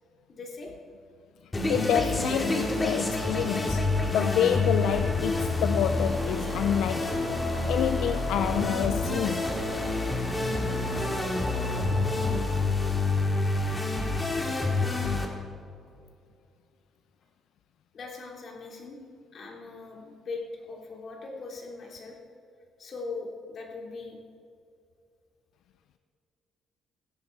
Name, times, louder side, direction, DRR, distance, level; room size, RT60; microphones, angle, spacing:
voice 1, 0.3-0.7 17.9-19.0 19.3-20.4 20.7-22.2 22.8-24.2, left 3 dB, 55° left, 2.8 m, -40 dB
sound 1, 1.5-15.3, left 2 dB, 20° left, 2.1 m, -28 dB
voice 2, 1.7-7.2 7.7-9.5, left 9 dB, 85° left, 0.4 m, -28 dB
sound 2, 5.9-12.4, right 3 dB, 50° right, 1.8 m, -39 dB
16.0 x 10.5 x 4.6 m
cardioid pair, 90°, 0 cm